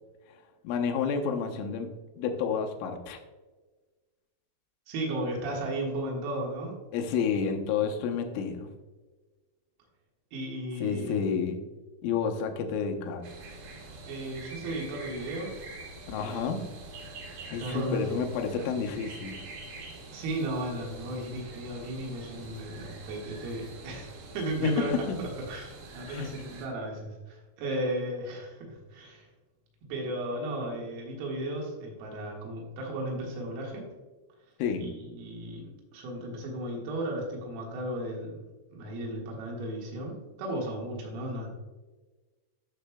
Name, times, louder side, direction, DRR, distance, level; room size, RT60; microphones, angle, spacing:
voice 1, 0.6-1.9 2.2-3.2 6.9-8.7 10.8-11.6 12.0-13.2 16.1-16.6 17.5-19.4 24.6-24.7 25.1-25.2 26.1-26.3 34.6-34.9, left 6 dB, 75° left, 4 dB, 3.0 m, -30 dB
voice 2, 4.9-6.8 10.3-11.2 14.0-15.5 16.2-16.4 17.6-18.0 20.1-24.9 25.5-29.3 29.8-33.9 34.8-38.4 38.7-41.5, right 1 dB, 80° right, -1 dB, 4.4 m, -35 dB
sound 1, 13.2-26.7, right 2 dB, 65° right, 2.3 m, -45 dB
13.5 x 6.2 x 2.3 m, 1.3 s
omnidirectional pair, 6.0 m